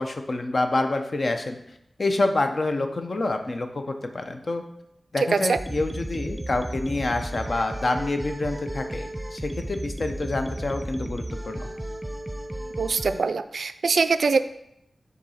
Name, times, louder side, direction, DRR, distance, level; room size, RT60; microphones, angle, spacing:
voice 1, 0.0-1.6 2.0-4.6 5.1-11.7, left 2 dB, 55° left, 6 dB, 0.7 m, -27 dB
sound 1, 5.5-13.2, right 1 dB, 15° right, 0.6 m, -34 dB
voice 2, 12.8-14.4, right 4 dB, 85° right, 12 dB, 0.3 m, -23 dB
5.2 x 4.0 x 5.5 m, 0.80 s
wide cardioid pair, 75°, 0 cm